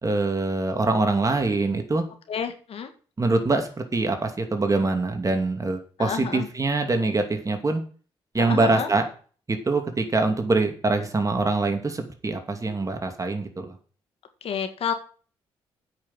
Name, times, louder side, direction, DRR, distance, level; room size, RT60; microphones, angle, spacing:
voice 1, 0.0-2.0 3.2-7.8 8.3-9.0 9.5-13.8, right 3 dB, 30° right, 5 dB, 2.6 m, -24 dB
voice 2, 2.3-2.9 6.0-6.5 8.4-8.9 14.4-14.9, left 7 dB, 65° left, 7 dB, 1.8 m, -29 dB
8.6 x 6.4 x 7.4 m, 0.40 s
supercardioid pair, 60°, 11 cm